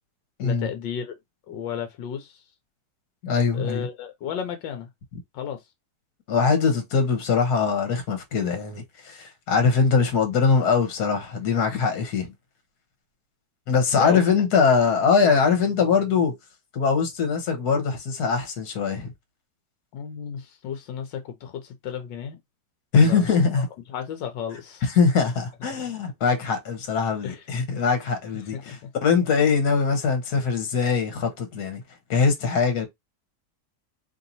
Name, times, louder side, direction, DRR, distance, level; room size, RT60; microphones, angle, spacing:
voice 1, 0.4-1.2 1.5-2.4 3.5-4.9 5.3-5.6 14.0-14.2 19.9-22.4 23.0-23.3 23.5-23.6 23.9-24.9 25.2-25.3 27.2-27.4 28.3-28.9, left 8 dB, 90° left, 1.5 m, -33 dB
voice 2, 3.2-3.9 6.3-12.3 13.7-16.3 16.7-19.1 22.9-23.6 24.8-31.8 32.1-32.9, left 5 dB, 60° left, 1.6 m, -22 dB
3.3 x 2.9 x 4.0 m
omnidirectional pair, 1.9 m